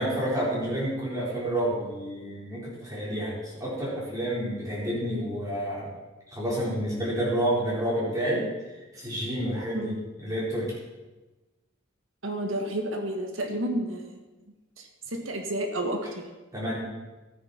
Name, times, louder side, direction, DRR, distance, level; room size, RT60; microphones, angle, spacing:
voice 1, 0.0-5.9 6.3-8.4 8.9-9.9 10.2-10.7 16.5-16.8, right 1 dB, 15° right, -7 dB, 4.5 m, -29 dB
voice 2, 12.2-14.1 14.8-16.2, right 1 dB, 75° right, 4 dB, 1.5 m, -31 dB
14.0 x 9.5 x 4.4 m, 1.2 s
head